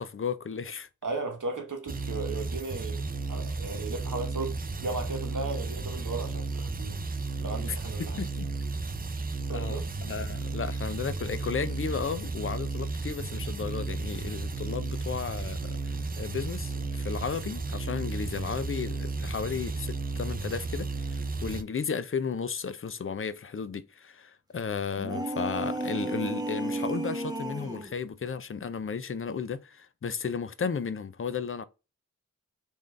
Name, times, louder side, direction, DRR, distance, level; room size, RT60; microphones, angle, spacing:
voice 1, 0.0-0.9 8.0-8.5 9.5-31.6, left 6 dB, 45° left, 0.4 m, -34 dB
voice 2, 1.0-7.0 7.4-8.2 9.5-9.9, right 3 dB, 75° right, 1.0 m, -36 dB
sound 1, 1.9-21.6, right 3 dB, 30° right, 0.4 m, -33 dB
sound 2, 25.0-27.9, right 2 dB, 10° right, 0.9 m, -33 dB
3.6 x 2.6 x 3.2 m
wide cardioid pair, 45°, 31 cm